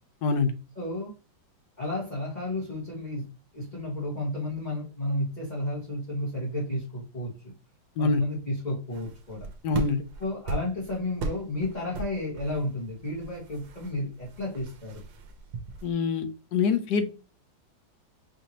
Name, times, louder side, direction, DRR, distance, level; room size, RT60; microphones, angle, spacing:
voice 1, 0.7-1.1 1.8-3.3 3.5-7.3 8.0-9.5 10.2-15.0, left 1 dB, 25° left, -6 dB, 1.2 m, -32 dB
sound 1, 8.9-15.9, right 4 dB, 85° right, 1.5 m, -39 dB
voice 2, 9.6-10.0 15.8-16.3 16.5-17.1, left 4 dB, 70° left, 9 dB, 1.2 m, -24 dB
5.0 x 2.7 x 2.9 m, 0.33 s
omnidirectional pair, 2.0 m